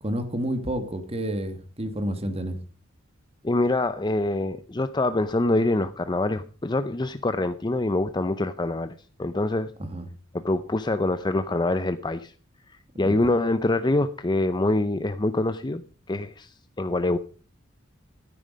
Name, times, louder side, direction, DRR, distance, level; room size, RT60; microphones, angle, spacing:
voice 1, 0.0-2.6 9.8-10.1 12.9-13.2, equal, 30° right, 9 dB, 1.6 m, -30 dB
voice 2, 3.4-8.9 9.2-9.7 10.3-12.3 13.0-17.2, left 2 dB, 20° left, 11 dB, 0.6 m, -25 dB
12.5 x 10.5 x 5.1 m, 0.37 s
head